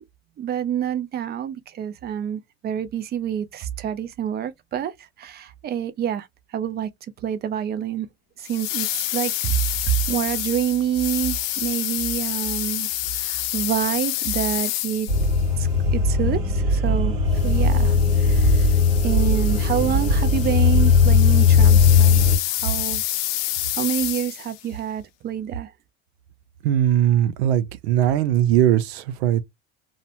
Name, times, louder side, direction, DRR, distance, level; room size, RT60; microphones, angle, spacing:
voice 1, 0.4-6.3 6.5-6.9 7.2-8.1 8.4-9.5 9.9-15.1 15.6-18.7 19.0-23.0 23.8-25.7, right 10 dB, 30° right, 0.4 m, -27 dB
sound 1, 8.4-15.5 17.3-24.6, left 14 dB, 55° left, 0.5 m, -29 dB
sound 2, 15.1-22.4, left 5 dB, 65° right, 1.4 m, -18 dB
voice 2, 26.6-29.4, right 11 dB, 85° right, 0.5 m, -20 dB
2.6 x 2.0 x 2.8 m
supercardioid pair, 105°, 31 cm